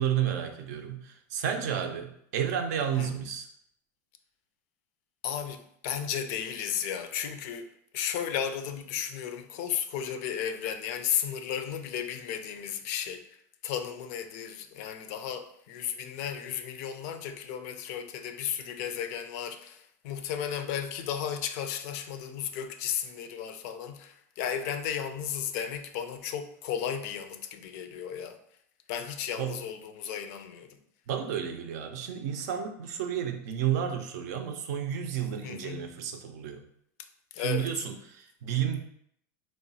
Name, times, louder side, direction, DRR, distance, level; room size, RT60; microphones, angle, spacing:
voice 1, 0.0-3.5 29.4-29.6 31.1-36.6 37.4-38.8, right 9 dB, 80° right, 0.4 m, -31 dB
voice 2, 5.2-28.4 28.9-30.8 35.4-35.9 37.3-37.9, left 9 dB, 70° left, 0.4 m, -34 dB
3.1 x 2.2 x 2.7 m
supercardioid pair, 105°, 9 cm